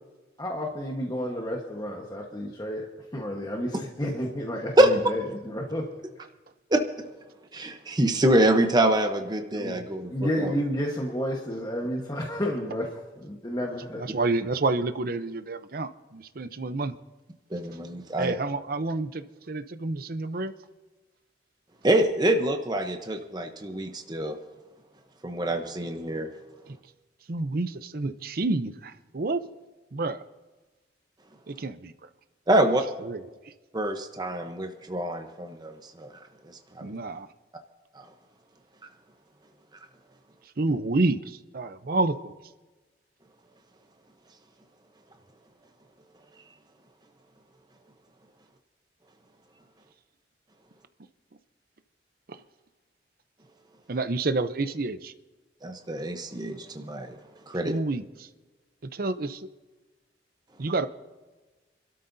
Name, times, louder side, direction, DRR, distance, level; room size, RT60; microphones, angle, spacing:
voice 1, 0.4-5.9 9.5-9.8 10.1-14.0, equal, 20° left, 1.2 m, -31 dB
voice 2, 7.5-10.5 17.5-18.3 21.8-24.4 25.2-26.3 32.5-32.8 33.7-36.8 37.9-38.1 55.6-57.2 57.5-57.7, right 1 dB, 25° right, 0.8 m, -25 dB
voice 3, 14.0-17.0 18.2-20.5 27.3-29.4 29.9-30.2 31.5-31.9 32.6-32.7 33.0-33.5 36.8-37.3 40.6-42.3 52.3-52.4 53.9-55.1 57.6-58.3 58.8-59.5 60.6-60.9, right 3 dB, 55° right, 0.7 m, -29 dB
27.0 x 13.0 x 2.7 m
head